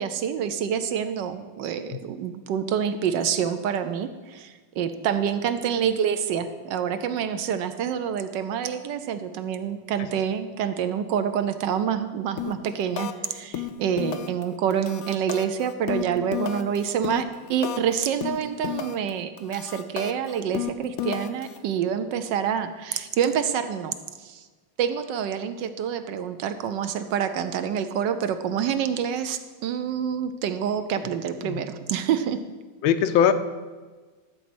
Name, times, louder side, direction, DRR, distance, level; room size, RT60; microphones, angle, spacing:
voice 1, 0.0-24.5 24.8-32.4, right 8 dB, 70° right, 9 dB, 1.2 m, -27 dB
sound 1, 12.4-12.7 13.0-13.3 13.5-14.4 14.7-17.9 18.2-19.1 19.4-21.6, left 10 dB, 70° left, 0.8 m, -32 dB
voice 2, 32.8-33.3, left 9 dB, 85° left, 10 dB, 1.5 m, -20 dB
12.5 x 4.2 x 7.7 m, 1.3 s
omnidirectional pair, 2.2 m